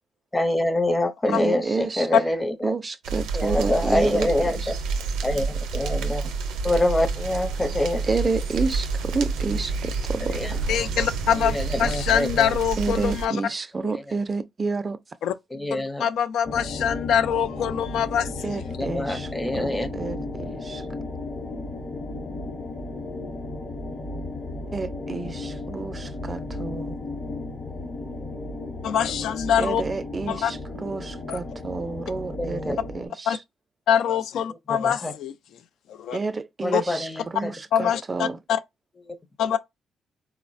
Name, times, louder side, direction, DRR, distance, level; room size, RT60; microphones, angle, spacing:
voice 1, 0.3-2.7 3.3-4.8 5.2-6.2 6.6-8.0 10.3-10.5 11.4-12.5 15.5-16.1 18.8-19.9 32.4-32.8 34.5-35.1 36.6-37.5 39.1-39.2, left 1 dB, 15° left, 0.6 m, -25 dB
voice 2, 1.3-2.3 2.6-4.7 6.2-6.3 8.0-10.7 12.8-15.0 18.4-20.9 24.7-27.0 29.6-33.4 36.1-38.4, right 4 dB, 30° right, 0.3 m, -30 dB
sound 1, 3.0-13.3, right 4 dB, 85° right, 0.5 m, -29 dB
voice 3, 10.7-13.4 15.2-15.3 15.7-18.3 28.8-29.8 30.3-30.5 31.3-31.4 33.3-33.4 33.9-35.3 36.0-36.2 36.7-36.8 37.7-38.6 39.4-39.6, left 9 dB, 75° left, 0.3 m, -24 dB
sound 2, 16.4-33.1, left 2 dB, 40° left, 0.8 m, -34 dB
3.8 x 2.1 x 2.5 m
cardioid pair, 90°, 0 cm